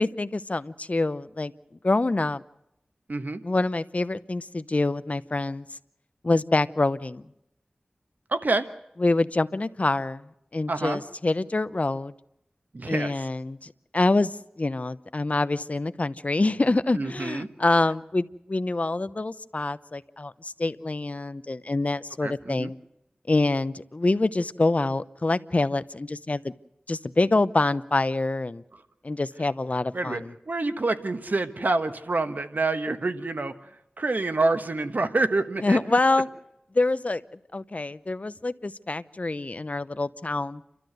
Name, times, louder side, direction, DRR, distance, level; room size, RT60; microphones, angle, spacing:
voice 1, 0.0-1.5 1.8-2.4 3.4-5.7 6.2-7.2 9.0-12.1 12.9-22.8 23.3-26.5 26.9-28.6 29.0-30.3 35.6-36.3 36.7-37.2 37.5-40.6, left 2 dB, 45° left, 14 dB, 0.8 m, -26 dB
voice 2, 3.1-3.4 8.3-8.7 10.7-11.0 12.7-13.3 16.9-17.5 22.2-22.7 29.9-33.7 34.0-35.8, right 2 dB, 65° right, 9 dB, 1.3 m, -27 dB
29.0 x 13.0 x 7.9 m, 0.82 s
wide cardioid pair, 55°, 3 cm